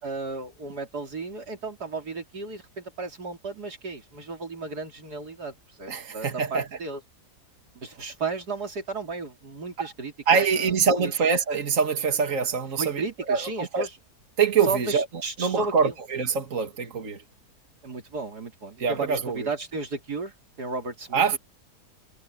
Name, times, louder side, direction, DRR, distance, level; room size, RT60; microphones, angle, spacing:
voice 1, 0.0-7.0 7.8-10.7 11.0-11.1 12.8-13.9 14.7-15.9 17.8-21.2, right 3 dB, 85° right, 3.6 m, -34 dB
voice 2, 5.9-6.7 9.8-9.9 10.3-13.9 14.4-15.1 15.4-17.2 18.8-19.5 21.1-21.4, right 6 dB, 55° right, 2.5 m, -24 dB
omnidirectional pair, 1.7 m